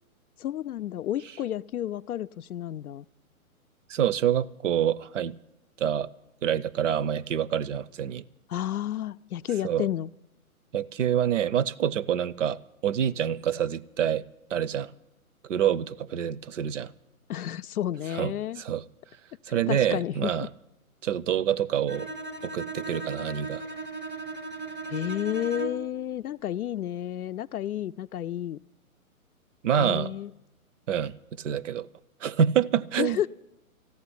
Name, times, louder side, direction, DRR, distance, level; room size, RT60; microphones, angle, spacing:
voice 1, 0.4-3.0 8.5-10.1 17.3-18.6 19.7-20.3 24.9-28.6 29.8-30.3 33.0-33.3, left 11 dB, 80° left, 0.5 m, -31 dB
voice 2, 3.9-5.3 5.8-6.1 6.4-8.2 9.6-9.9 10.7-14.2 14.5-14.9 15.5-16.9 18.1-18.8 19.5-20.5 21.0-22.1 22.4-23.6 29.6-30.1 30.9-31.9 32.2-33.2, right 9 dB, 60° right, 0.6 m, -27 dB
Bowed string instrument, 21.9-26.0, right 3 dB, 5° right, 0.5 m, -37 dB
14.0 x 9.6 x 9.9 m
hypercardioid pair, 140°, 43 cm